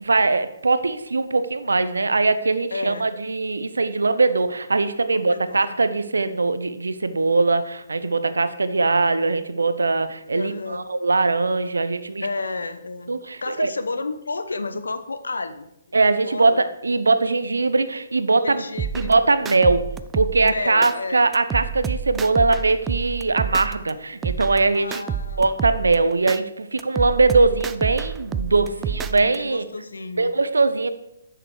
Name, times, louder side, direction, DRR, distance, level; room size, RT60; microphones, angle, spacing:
voice 1, 0.0-12.3 13.1-13.7 15.9-18.6 19.0-19.9 20.1-25.0 25.4-29.6 30.2-30.9, right 3 dB, 75° right, 12 dB, 0.8 m, -21 dB
voice 2, 2.7-3.1 5.1-5.6 10.3-10.9 12.2-13.1 13.4-15.7 16.2-16.6 18.4-19.2 20.4-21.3 24.7-25.5 28.3-29.0 29.3-30.3, left 3 dB, 70° left, 10 dB, 0.9 m, -31 dB
sound 1, 18.8-20.9 21.3-23.9 24.2-26.4 26.8-29.4, right 7 dB, 15° right, 0.4 m, -29 dB
9.9 x 6.8 x 4.8 m, 0.84 s
figure-of-eight pair, 130°, 0 cm